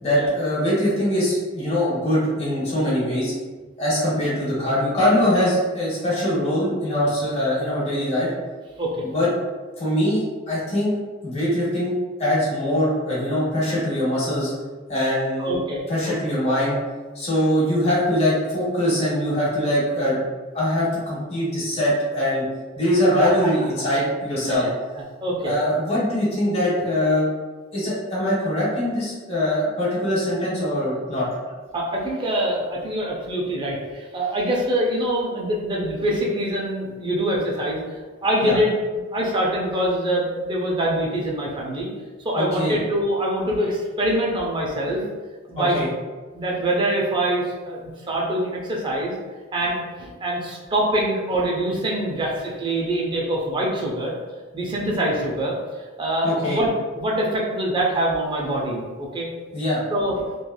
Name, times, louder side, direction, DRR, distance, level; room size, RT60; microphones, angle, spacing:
voice 1, 0.0-3.3 3.8-8.3 9.0-9.3 9.8-10.9 11.2-11.9 12.2-14.5 14.9-15.5 15.9-16.8 17.1-20.2 20.5-22.4 22.8-24.7 25.4-27.3 27.7-31.3 38.4-38.6 42.3-42.8 45.6-45.9 56.2-56.6 59.5-59.8, left 1 dB, 30° left, -8 dB, 1.2 m, -22 dB
voice 2, 15.4-16.1 24.4-24.7 25.2-25.5 31.7-37.8 38.2-41.9 42.2-45.0 45.5-45.8 46.3-49.1 49.5-54.1 54.5-55.5 56.0-56.7 56.9-59.3 59.9-60.2, right 1 dB, 25° right, -3 dB, 0.5 m, -24 dB
3.2 x 2.3 x 2.2 m, 1.3 s
head